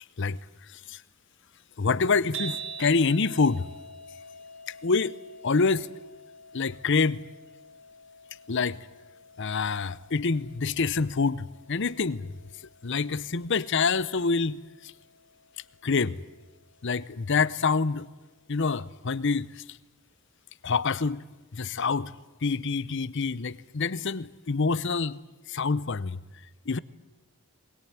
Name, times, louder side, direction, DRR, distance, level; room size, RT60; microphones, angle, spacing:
voice 1, 1.8-3.7 4.8-5.2 5.4-5.9 6.5-7.2 8.5-8.8 9.4-12.3 12.8-14.9 15.8-16.2 16.8-18.1 18.5-19.6 20.6-21.2 21.5-22.1 22.4-25.2 25.5-26.2 26.7-26.8, left 4 dB, 55° left, 0.7 m, -26 dB
sound 1, 2.3-18.6, right 4 dB, 65° right, 4.0 m, -47 dB
22.0 x 21.5 x 9.5 m
head